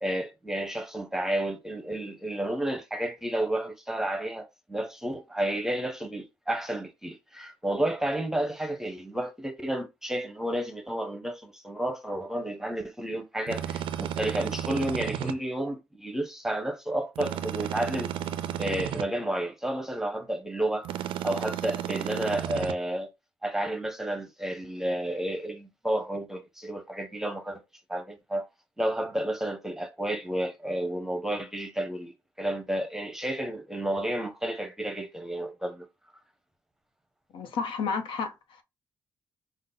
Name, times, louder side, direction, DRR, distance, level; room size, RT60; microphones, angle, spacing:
voice 1, 0.0-18.1 18.6-20.9 21.2-23.1 23.4-27.6 27.9-28.4 28.8-35.9, right 1 dB, 5° right, 0.7 m, -31 dB
sound 1, 13.5-15.4 17.2-19.1 20.8-22.7, right 10 dB, 90° right, 0.4 m, -33 dB
voice 2, 37.3-38.6, left 5 dB, 80° left, 0.8 m, -32 dB
5.2 x 2.1 x 3.9 m
cardioid pair, 120°, 9 cm